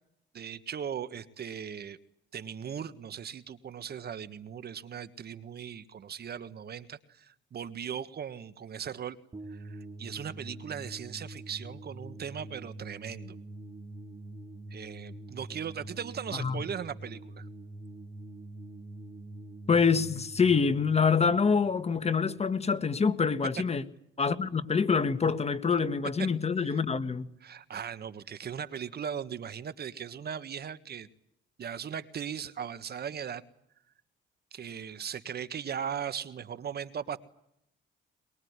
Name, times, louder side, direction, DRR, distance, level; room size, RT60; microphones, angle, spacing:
voice 1, 0.3-2.0 2.3-9.2 9.5-13.4 14.7-17.5 26.6-26.8 27.4-31.1 31.6-33.4 34.5-37.2, right 8 dB, 55° right, 1.6 m, -38 dB
sound 1, 9.3-22.4, right 2 dB, 25° right, 3.4 m, -45 dB
voice 2, 19.7-23.8 24.2-27.3, left 5 dB, 30° left, 1.7 m, -26 dB
23.0 x 22.5 x 9.7 m
cardioid pair, 90°, 20 cm